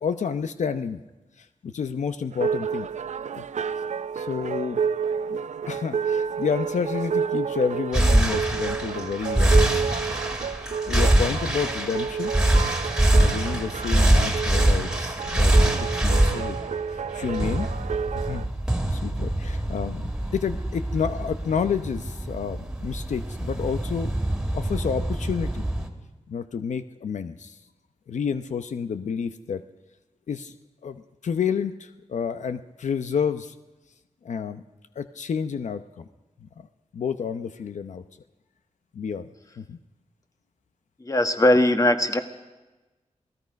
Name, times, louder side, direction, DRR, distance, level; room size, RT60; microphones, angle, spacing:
voice 1, 0.0-1.0 1.4-2.9 3.4-3.5 4.1-4.8 5.3-5.4 5.7-9.7 10.9-12.3 13.1-16.6 16.9-17.7 18.1-18.5 18.9-24.1 24.5-25.6 26.3-27.6 28.1-29.6 30.3-30.5 30.8-33.5 34.2-34.6 35.0-36.0 36.6-36.7 36.9-38.0 38.9-39.3 39.6-39.8, left 6 dB, 85° left, 10 dB, 0.8 m, -30 dB
sound 1, 2.3-18.5, right 6 dB, 80° right, 0.6 m, -30 dB
sound 2, 7.9-25.9, right 1 dB, 5° right, 2.4 m, -24 dB
voice 2, 41.0-42.2, left 1 dB, 30° left, 7 dB, 1.6 m, -20 dB
28.0 x 18.5 x 5.3 m, 1.1 s
wide cardioid pair, 105°, 12 cm